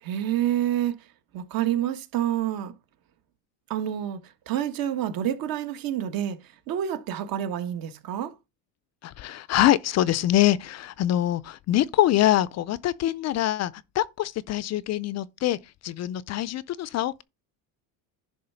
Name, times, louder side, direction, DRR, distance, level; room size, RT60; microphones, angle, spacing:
voice 1, 0.0-1.1 1.3-2.7 3.7-6.4 6.7-8.3, right 11 dB, 55° right, 1.5 m, -28 dB
voice 2, 9.0-15.6 15.8-17.2, left 13 dB, 40° left, 0.5 m, -24 dB
11.0 x 3.6 x 5.6 m
cardioid pair, 120°, 41 cm